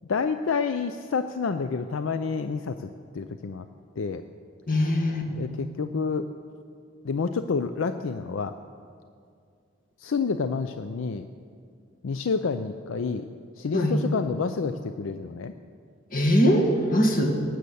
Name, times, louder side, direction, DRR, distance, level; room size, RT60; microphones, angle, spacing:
voice 1, 0.1-3.7 4.0-4.2 5.3-6.3 7.0-8.5 10.0-11.2 12.0-13.2 13.6-15.5, left 5 dB, 70° left, 9 dB, 0.4 m, -29 dB
voice 2, 4.7-5.3 13.7-14.0 16.1-17.3, equal, 45° left, 1 dB, 1.7 m, -21 dB
18.0 x 7.8 x 6.9 m, 2.2 s
head